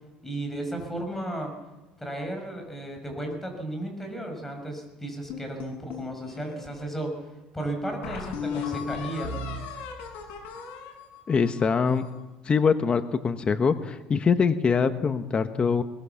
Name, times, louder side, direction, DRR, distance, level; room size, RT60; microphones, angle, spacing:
voice 1, 0.2-1.5 2.0-7.2 7.5-9.4, right 1 dB, 5° left, 3 dB, 6.2 m, -34 dB
sound 1, 5.3-6.8 7.4-7.5 8.0-12.2, left 5 dB, 65° left, 6.4 m, -36 dB
voice 2, 11.3-12.0 12.4-15.8, left 5 dB, 25° left, 10 dB, 1.1 m, -23 dB
21.5 x 21.0 x 7.1 m, 1.1 s
cardioid pair, 115°, 4 cm